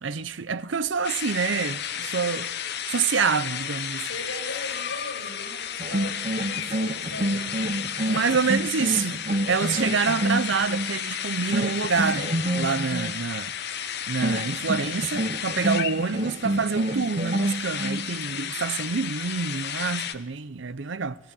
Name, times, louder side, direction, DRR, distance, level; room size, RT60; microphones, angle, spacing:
voice 1, 0.0-2.5 2.9-4.1 8.1-9.2 9.5-13.5 14.1-21.2, right 5 dB, 60° right, 0.7 m, -27 dB
sound 1, 1.0-20.1, left 9 dB, 55° left, 1.1 m, -33 dB
voice 2, 4.0-7.5 8.0-8.3 18.3-18.5, left 1 dB, 70° left, 6.6 m, -39 dB
sound 2, 5.8-11.0 11.5-13.1 14.2-18.1, right 1 dB, 35° right, 0.9 m, -28 dB
19.5 x 15.5 x 8.5 m
head